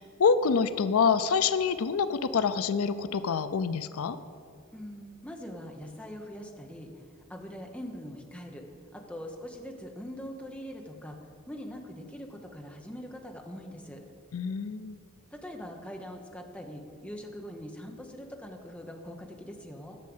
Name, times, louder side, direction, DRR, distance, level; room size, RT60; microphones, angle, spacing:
voice 1, 0.0-4.2 14.3-15.0, left 5 dB, 85° left, 13 dB, 0.5 m, -26 dB
voice 2, 4.7-7.0 7.3-8.6 8.9-11.2 11.5-14.0 15.3-20.0, equal, 5° left, 2 dB, 1.0 m, -42 dB
12.0 x 6.5 x 7.8 m, 2.3 s
head